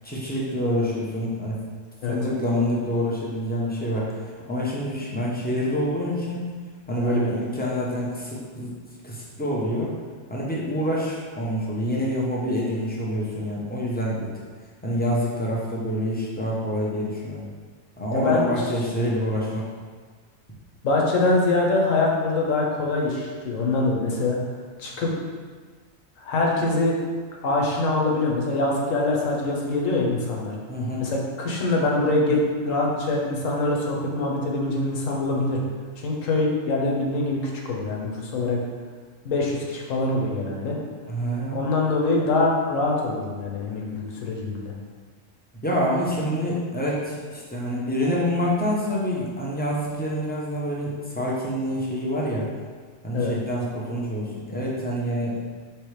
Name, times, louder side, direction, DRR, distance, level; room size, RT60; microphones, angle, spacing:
voice 1, 0.0-1.6 2.0-4.1 4.5-6.5 6.9-8.7 9.0-9.9 10.3-14.3 14.8-17.4 18.0-19.6 30.7-31.0 41.1-41.6 45.6-52.4 53.0-55.4, equal, 15° left, -5 dB, 0.4 m, -26 dB
voice 2, 18.1-18.4 20.8-24.4 24.8-25.1 26.2-27.0 27.4-30.5 31.0-35.6 36.0-38.6 39.2-40.8 41.5-44.7 53.1-53.3, left 2 dB, 85° left, -1 dB, 1.2 m, -24 dB
4.7 x 3.2 x 3.2 m, 1.5 s
omnidirectional pair, 1.3 m